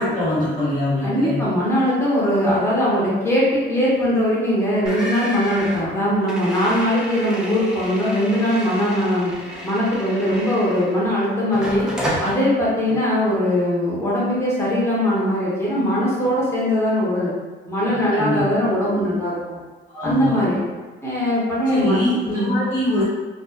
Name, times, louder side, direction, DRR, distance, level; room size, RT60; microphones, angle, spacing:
voice 1, 0.0-1.4 12.9-13.0 18.1-18.4 19.9-20.4 21.7-23.0, left 1 dB, 40° left, -9 dB, 1.4 m, -23 dB
voice 2, 1.0-9.3 9.6-11.9 12.2-17.3 17.7-19.6 20.0-20.6 21.0-22.0 22.3-22.5, equal, 15° left, -8 dB, 0.9 m, -20 dB
sound 1, 4.9-11.1 11.5-12.4, equal, 5° right, 0.5 m, -31 dB
2.5 x 2.4 x 2.3 m, 1.3 s
cardioid pair, 90°, 20 cm